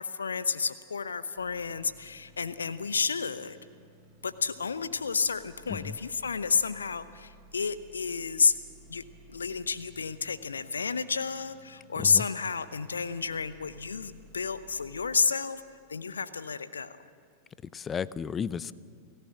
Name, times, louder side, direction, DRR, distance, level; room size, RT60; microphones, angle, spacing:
voice 1, 0.0-3.6 4.2-8.5 8.9-9.0 9.3-15.6 15.9-17.0, left 5 dB, 75° left, 13 dB, 0.8 m, -30 dB
sound 1, 1.4-14.9, right 1 dB, 30° right, 7.8 m, -56 dB
voice 2, 17.7-18.7, left 7 dB, 20° left, 19 dB, 0.7 m, -33 dB
29.5 x 18.0 x 7.7 m, 2.1 s
figure-of-eight pair, 90°, 0 cm